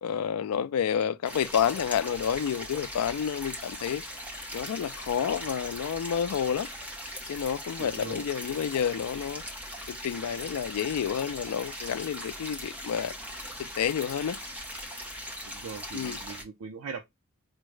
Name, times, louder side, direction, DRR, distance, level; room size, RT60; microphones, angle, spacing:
voice 1, 0.0-4.0 4.5-6.7 7.3-9.4 9.9-13.1 13.8-14.4 15.9-16.2, left 8 dB, 80° left, 0.3 m, -29 dB
sound 1, 1.3-16.4, equal, 5° right, 0.7 m, -40 dB
voice 2, 7.8-8.3 15.5-17.1, right 5 dB, 70° right, 0.5 m, -40 dB
4.5 x 2.0 x 3.1 m
head